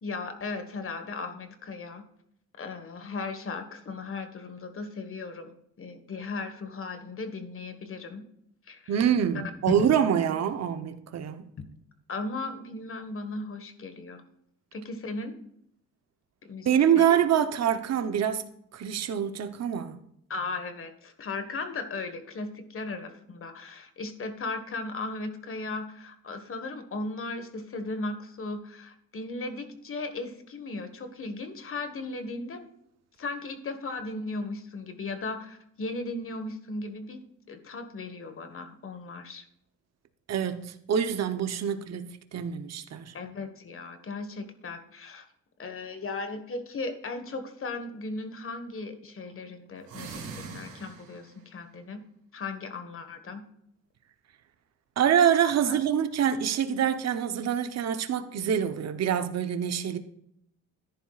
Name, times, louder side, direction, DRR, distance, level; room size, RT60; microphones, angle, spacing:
voice 1, 0.0-2.0 2.6-8.2 8.7-9.0 9.8-10.0 12.1-14.2 14.7-15.3 16.4-17.1 20.3-32.6 33.2-37.2 37.5-39.4 43.1-45.2 45.6-52.0 52.3-53.4 55.6-55.8, left 3 dB, 45° left, 1.6 m, -37 dB
voice 2, 8.9-11.5 16.6-18.5 18.7-20.0 40.3-43.1 55.0-60.0, right 9 dB, 60° right, 1.0 m, -25 dB
sound 1, 49.8-51.4, right 4 dB, 75° right, 4.0 m, -42 dB
14.0 x 10.5 x 2.5 m
cardioid pair, 90°, 30 cm